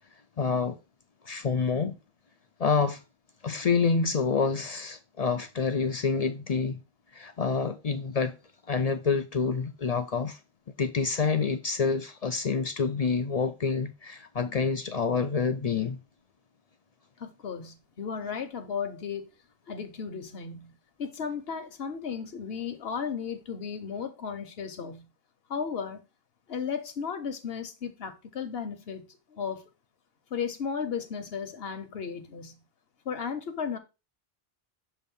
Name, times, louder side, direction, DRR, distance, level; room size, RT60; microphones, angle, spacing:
voice 1, 0.4-0.8 1.2-2.0 2.6-3.0 3.4-6.8 7.1-8.4 8.7-10.4 10.8-16.0, left 5 dB, 50° left, 0.5 m, -27 dB
voice 2, 17.2-19.3 19.7-20.7 21.0-25.1 25.5-26.0 26.5-29.0 29.3-29.7 30.3-32.6 33.0-33.8, left 6 dB, 70° left, 1.1 m, -35 dB
6.9 x 2.6 x 5.3 m
omnidirectional pair, 1.1 m